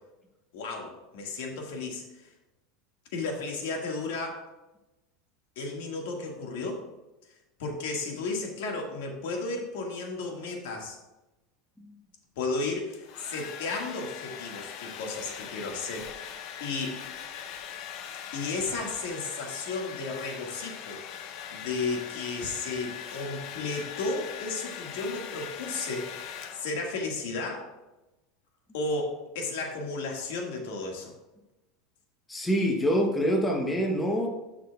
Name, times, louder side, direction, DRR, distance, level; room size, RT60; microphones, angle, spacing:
voice 1, 0.5-2.3 3.1-4.4 5.6-6.8 7.6-11.0 12.4-17.0 18.3-27.7 28.7-31.1, left 3 dB, 75° left, 1 dB, 1.7 m, -34 dB
Domestic sounds home sounds, 12.7-27.0, left 8 dB, 45° left, 0.7 m, -41 dB
voice 2, 32.3-34.3, equal, 10° left, 1 dB, 0.9 m, -26 dB
12.0 x 6.0 x 2.3 m, 1.0 s
supercardioid pair, 155°, 0 cm